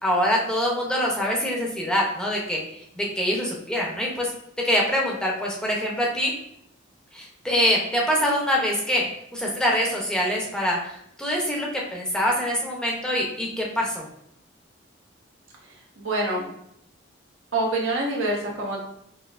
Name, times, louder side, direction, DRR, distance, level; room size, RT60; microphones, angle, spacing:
voice 1, 0.0-4.3 4.6-6.3 7.1-14.0, equal, 5° left, -3 dB, 0.6 m, -25 dB
voice 2, 15.6-16.5 17.5-18.8, right 2 dB, 75° right, -2 dB, 1.0 m, -26 dB
5.7 x 2.7 x 2.4 m, 0.73 s
head